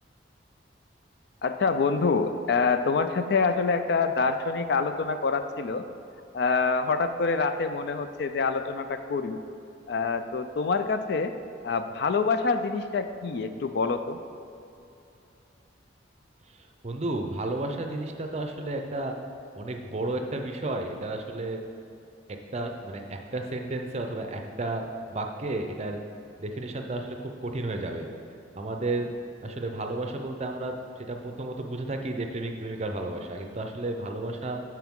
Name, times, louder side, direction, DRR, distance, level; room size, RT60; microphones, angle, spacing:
voice 1, 1.4-5.8 6.3-9.4 9.9-11.3 11.6-14.2, left 4 dB, 60° left, 9 dB, 0.4 m, -26 dB
voice 2, 16.6-19.2 19.6-21.6 22.5-26.0 26.4-28.1 28.6-29.1 29.4-34.6, right 2 dB, 35° right, 4 dB, 0.6 m, -32 dB
12.0 x 4.7 x 3.7 m, 2.7 s
head